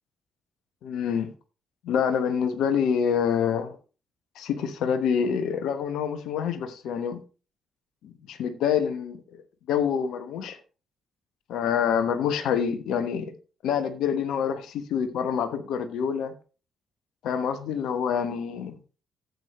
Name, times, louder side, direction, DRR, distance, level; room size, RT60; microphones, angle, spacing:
voice 1, 0.8-1.3 1.8-3.7 4.3-7.2 8.0-9.4 9.7-10.6 11.5-13.3 13.6-16.3 17.2-18.8, left 7 dB, 60° left, 1.1 m, -26 dB
13.5 x 8.1 x 3.1 m
figure-of-eight pair, 40°, 0 cm